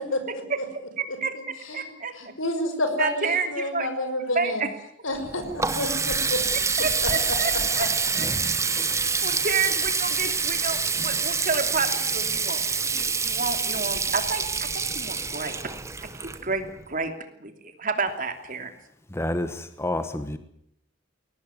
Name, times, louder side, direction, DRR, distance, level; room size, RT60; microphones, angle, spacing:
voice 1, 1.0-1.3 1.7-2.1 3.0-3.9 4.3-4.7 6.8-7.9 8.1-8.3 9.2-12.6 12.9-15.6 16.0-16.1 16.4-17.1 17.4-18.7, right 4 dB, 40° right, 7 dB, 2.9 m, -29 dB
voice 2, 2.2-4.6 5.0-6.4 7.0-7.1 7.8-7.9 8.6-8.8, left 1 dB, 90° left, 8 dB, 5.6 m, -29 dB
Water tap faucet, 5.2-16.8, right 5 dB, 15° right, 1.0 m, -26 dB
voice 3, 19.1-20.4, left 1 dB, 15° left, 10 dB, 1.2 m, -29 dB
22.5 x 18.0 x 9.7 m, 0.73 s
head